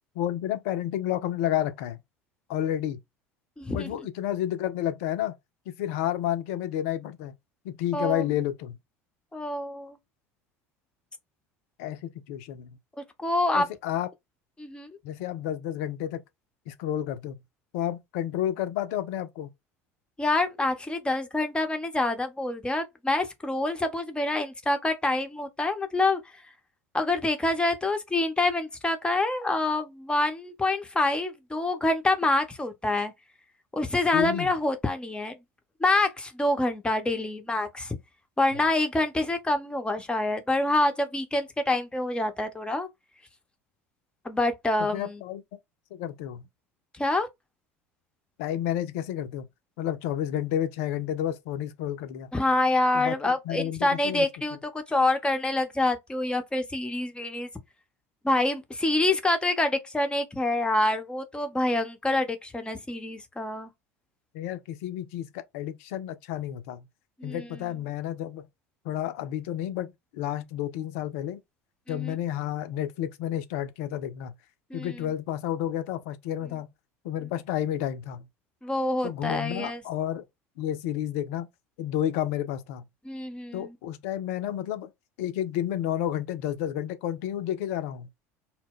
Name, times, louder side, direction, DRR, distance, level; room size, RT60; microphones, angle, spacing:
voice 1, 0.2-2.0 2.5-3.0 3.7-5.4 5.7-7.3 7.6-8.8 11.8-12.8 13.5-14.1 15.0-16.2 16.7-17.4 17.7-19.5 34.1-34.5 38.5-38.7 44.8-45.4 45.9-46.5 48.4-49.4 49.8-52.3 52.9-54.3 64.3-66.9 67.2-68.5 68.8-69.9 70.1-71.4 71.9-74.4 74.7-76.7 77.0-78.3 79.0-80.2 80.6-81.5 81.8-82.8 83.5-84.9 85.2-88.1, left 11 dB, 65° left, 0.5 m, -31 dB
voice 2, 3.6-3.9 7.9-8.2 9.3-10.0 13.2-13.6 14.6-14.9 20.2-26.2 26.9-33.1 33.7-35.4 35.8-38.0 38.4-42.9 44.2-45.2 46.9-47.3 52.3-57.5 58.2-63.7 67.2-67.5 71.9-72.1 74.7-75.0 78.6-79.8 83.0-83.7, left 2 dB, 10° left, 0.7 m, -26 dB
2.1 x 2.1 x 3.6 m
figure-of-eight pair, 70°, 8 cm